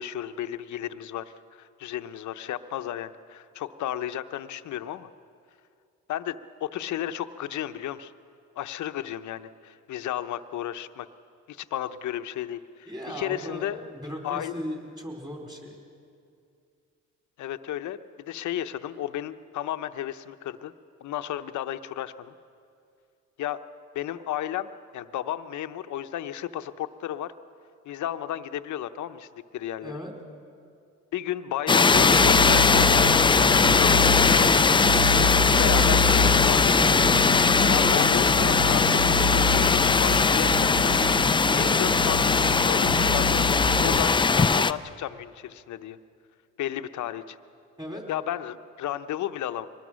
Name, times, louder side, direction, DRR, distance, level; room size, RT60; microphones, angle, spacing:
voice 1, 0.0-5.1 6.1-8.1 8.6-11.1 11.5-13.8 14.2-14.5 17.4-20.7 21.0-22.3 23.4-23.6 23.9-27.3 27.9-30.0 31.1-35.2 35.6-36.8 37.4-40.9 41.5-46.0 46.6-47.4 48.1-49.7, left 11 dB, 70° left, 10 dB, 0.8 m, -33 dB
voice 2, 12.9-15.8 29.8-30.1 41.5-41.7 47.8-48.0, equal, 15° right, 1 dB, 4.2 m, -37 dB
sound 1, 31.7-44.7, left 4 dB, 15° left, 0.4 m, -20 dB
sound 2, 31.9-44.0, left 2 dB, 70° right, 2.0 m, -29 dB
23.5 x 19.5 x 6.3 m, 2.4 s
cardioid pair, 90°, 30 cm